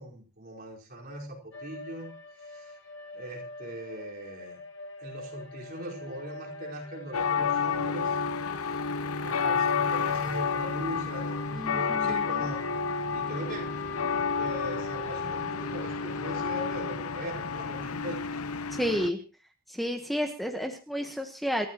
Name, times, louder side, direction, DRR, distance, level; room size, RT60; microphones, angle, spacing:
voice 1, 0.0-2.1 2.4-2.7 3.1-4.6 5.0-8.2 8.6-8.8 9.2-12.6 13.1-13.7 14.3-18.3, right 1 dB, 45° right, -2 dB, 4.6 m, -40 dB
sound 1, 1.5-16.9, left 3 dB, 55° left, 1.9 m, -42 dB
sound 2, 7.1-19.1, left 5 dB, 85° left, 0.9 m, -30 dB
voice 2, 11.5-12.4 18.7-19.2 19.7-21.7, equal, ahead, 4 dB, 1.1 m, -31 dB
27.5 x 13.0 x 3.0 m, 0.33 s
head